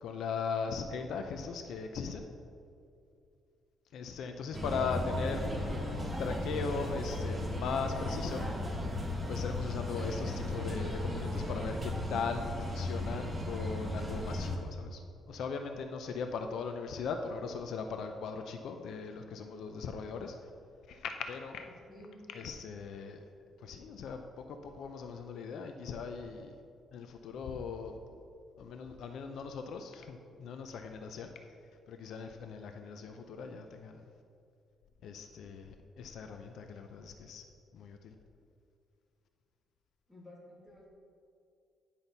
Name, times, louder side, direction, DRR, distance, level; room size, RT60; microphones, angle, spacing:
voice 1, 0.0-2.3 3.9-8.4 9.3-15.0 15.3-20.4 20.9-21.6 22.3-23.2 23.6-26.5 26.9-27.9 28.6-31.3 31.9-34.0 35.0-37.4 37.7-38.1, left 5 dB, 65° left, 6 dB, 0.5 m, -39 dB
voice 2, 4.5-5.1 21.6-22.5 40.1-40.9, left 1 dB, ahead, -5 dB, 1.7 m, -51 dB
sound 1, 4.5-14.6, left 1 dB, 15° right, 0.9 m, -36 dB
9.7 x 5.8 x 4.0 m, 2.4 s
cardioid pair, 170°, 0 cm